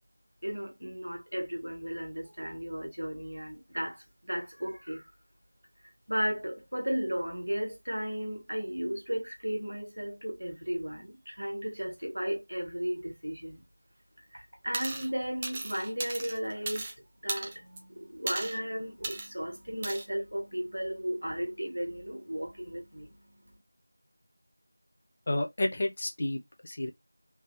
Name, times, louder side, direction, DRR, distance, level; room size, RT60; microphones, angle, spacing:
voice 1, 0.4-5.0 6.1-13.6 14.3-16.9 17.2-23.6, equal, 90° right, 1.2 m, -35 dB
sound 1, 14.7-15.1 15.4-16.9 17.3-17.8 18.3-18.6 19.0-19.3 19.8-20.0, right 2 dB, 15° right, 0.4 m, -36 dB
voice 2, 25.3-26.9, left 1 dB, 30° left, 0.6 m, -31 dB
3.3 x 2.3 x 3.1 m
figure-of-eight pair, 175°, 0 cm